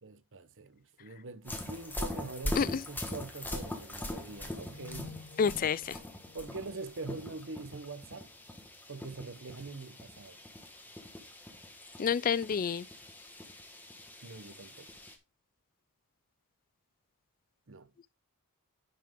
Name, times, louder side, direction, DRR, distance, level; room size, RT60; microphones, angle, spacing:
voice 1, 0.0-5.1 6.3-8.3 8.9-10.4 14.2-14.9 17.7-17.9, right 3 dB, 60° right, 1.0 m, -44 dB
sound 1, 1.5-15.2, left 1 dB, 10° left, 1.4 m, -42 dB
sound 2, 4.1-7.5, left 3 dB, 75° left, 1.9 m, -51 dB
voice 2, 5.4-6.0 12.0-12.9, left 6 dB, 40° left, 0.4 m, -29 dB
10.5 x 5.9 x 3.7 m
head